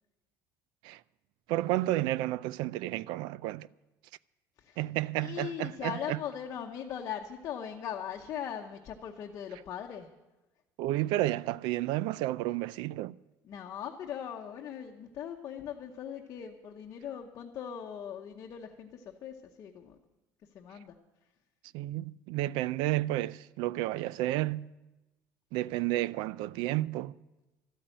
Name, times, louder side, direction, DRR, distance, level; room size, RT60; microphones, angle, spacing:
voice 1, 1.5-3.7 4.8-6.2 10.8-13.2 21.7-24.7 25.5-27.2, right 16 dB, 80° right, 0.4 m, -31 dB
voice 2, 5.2-10.1 13.4-20.0 20.5-20.9, left 9 dB, 40° left, 0.9 m, -40 dB
13.0 x 8.7 x 8.9 m
cardioid pair, 180°, 8 cm